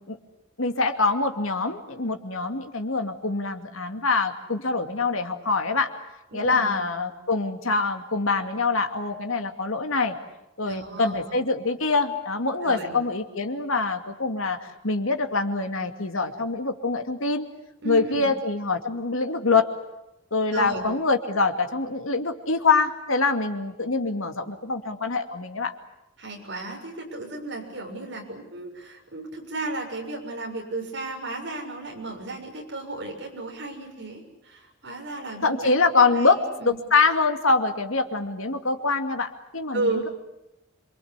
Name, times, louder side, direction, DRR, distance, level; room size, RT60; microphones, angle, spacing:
voice 1, 0.6-5.9 6.3-10.1 10.6-17.5 17.8-19.7 20.3-25.7 35.4-40.1, left 3 dB, 80° left, 6 dB, 2.4 m, -24 dB
voice 2, 6.3-6.8 10.6-11.2 12.6-13.0 17.8-18.3 20.5-20.9 26.2-35.7 36.2-36.8 39.7-40.1, right 2 dB, 55° right, 1 dB, 6.9 m, -34 dB
27.0 x 23.5 x 8.3 m, 0.90 s
head